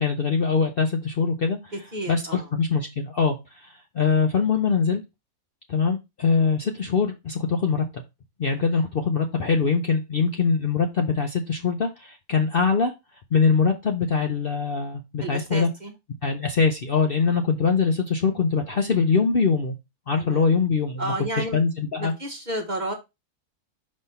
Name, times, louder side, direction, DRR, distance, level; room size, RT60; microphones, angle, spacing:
voice 1, 0.0-1.7 2.1-2.2 2.5-5.0 5.7-8.0 8.4-12.9 13.3-15.7 16.2-19.8 20.1-21.0 21.4-22.1, left 5 dB, 50° left, 4 dB, 0.7 m, -23 dB
voice 2, 1.7-2.5 8.6-8.8 15.2-15.9 17.2-17.3 20.2-20.5 21.0-21.6 22.0-22.9, right 1 dB, 35° right, 3 dB, 0.9 m, -32 dB
5.3 x 3.2 x 5.5 m, 0.23 s
omnidirectional pair, 1.6 m